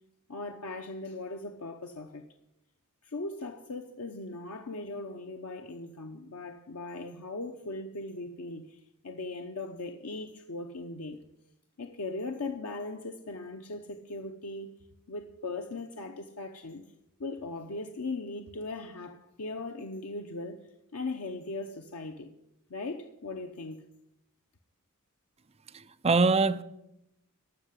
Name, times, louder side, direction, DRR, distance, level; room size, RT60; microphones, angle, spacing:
voice 1, 0.3-2.3 3.0-11.3 11.8-14.7 15.1-16.8 17.2-20.6 20.9-22.3 22.7-23.9, left 2 dB, 90° left, 0.9 m, -39 dB
voice 2, 25.7-26.6, right 4 dB, 30° right, 0.5 m, -24 dB
15.0 x 5.8 x 9.8 m
head